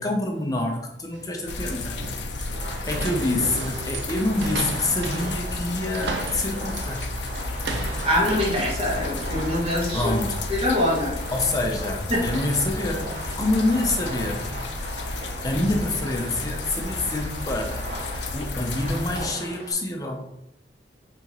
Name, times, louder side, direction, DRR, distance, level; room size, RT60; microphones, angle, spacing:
voice 1, 0.0-2.0 2.4-7.1 9.9-10.4 11.3-14.6 14.9-15.1 15.4-17.9 18.3-20.3, left 2 dB, 20° left, 2 dB, 0.6 m, -27 dB
sound 1, 1.1-11.5, right 3 dB, 75° right, 0.6 m, -37 dB
sound 2, 1.5-19.3, left 3 dB, 80° left, 0.5 m, -33 dB
Fireworks, 2.4-19.7, right 1 dB, 55° right, 1.3 m, -37 dB
voice 2, 8.0-10.1 10.5-11.1 12.1-12.2, left 1 dB, 30° right, -6 dB, 1.6 m, -23 dB
6.2 x 2.9 x 2.9 m, 0.85 s
head